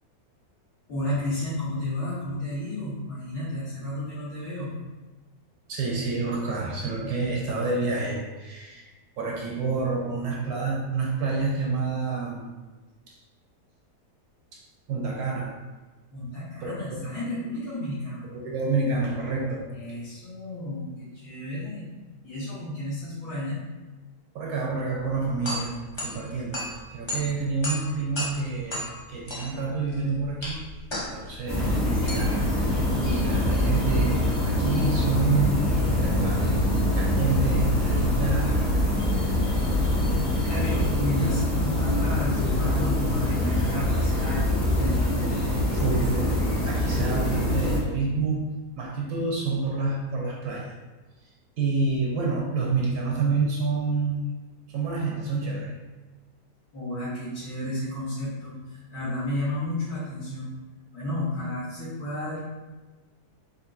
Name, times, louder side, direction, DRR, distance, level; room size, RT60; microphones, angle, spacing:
voice 1, 0.9-4.7 16.1-18.2 19.7-21.9 22.2-23.6 40.4-45.0 56.7-60.5 60.9-62.4, left 1 dB, 70° left, -13 dB, 1.7 m, -32 dB
voice 2, 5.7-8.9 9.2-12.4 13.1-13.2 14.5-14.6 14.9-15.6 16.6-17.0 18.2-19.7 24.3-30.6 31.0-36.6 37.0-38.8 40.3-40.8 45.7-48.5 48.8-50.7 51.6-54.2 54.7-55.7, right 4 dB, 70° right, -1 dB, 1.0 m, -28 dB
sound 1, 25.0-34.1, left 1 dB, 40° left, 0.3 m, -36 dB
sound 2, 31.5-47.8, left 1 dB, 20° left, 1.0 m, -24 dB
5.1 x 2.5 x 2.5 m, 1.2 s
omnidirectional pair, 1.7 m